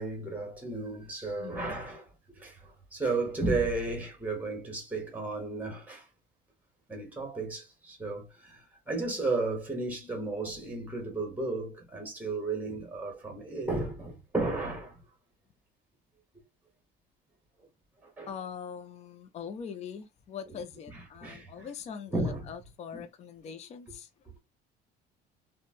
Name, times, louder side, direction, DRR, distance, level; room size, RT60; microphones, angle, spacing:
voice 1, 0.0-6.1 6.9-15.0 18.0-18.3 21.2-21.7 22.1-22.5 22.9-23.1, right 3 dB, 10° right, 1.2 m, -34 dB
voice 2, 1.4-1.8 18.3-24.3, left 7 dB, 35° left, 0.4 m, -42 dB
3.0 x 2.1 x 2.5 m
cardioid pair, 130°, 18 cm